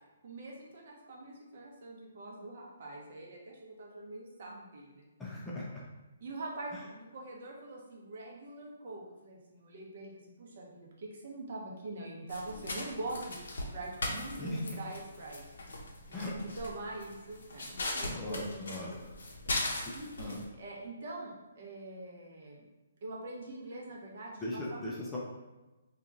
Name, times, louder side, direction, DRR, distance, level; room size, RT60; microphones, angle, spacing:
voice 1, 0.2-5.0 6.2-15.4 16.3-19.0 19.9-22.6 23.0-24.9, right 2 dB, 50° right, -2 dB, 0.9 m, -44 dB
voice 2, 5.2-5.8 6.7-6.9 14.4-14.8 16.1-16.3 18.0-19.1 20.2-20.5 24.4-25.2, left 1 dB, 5° left, -6 dB, 0.4 m, -39 dB
sound 1, 12.3-20.4, left 2 dB, 80° left, 0.8 m, -39 dB
2.9 x 2.4 x 3.8 m, 1.1 s
hypercardioid pair, 165°, 0 cm